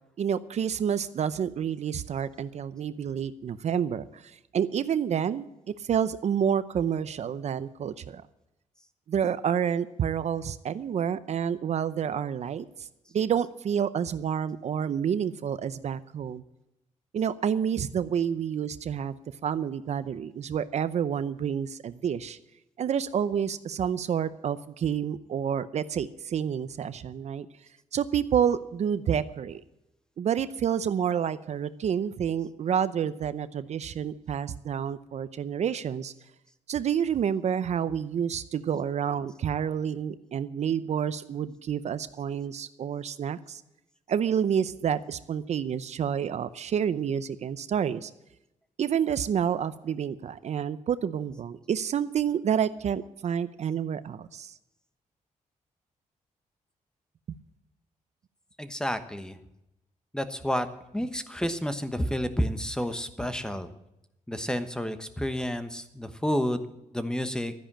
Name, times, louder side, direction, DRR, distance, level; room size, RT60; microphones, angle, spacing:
voice 1, 0.2-4.2 4.5-5.5 5.8-8.2 9.1-12.6 13.1-16.4 17.1-19.1 19.4-22.4 22.8-27.5 27.9-29.6 30.2-36.1 36.7-43.6 44.1-48.1 48.8-54.5 57.3-57.4, right 8 dB, 60° right, 14 dB, 0.6 m, -29 dB
voice 2, 58.6-59.4 60.1-60.7 60.9-63.7 64.3-66.7 66.9-67.5, equal, 5° left, 10 dB, 1.1 m, -30 dB
12.5 x 10.5 x 7.4 m, 0.88 s
wide cardioid pair, 130°, 13 cm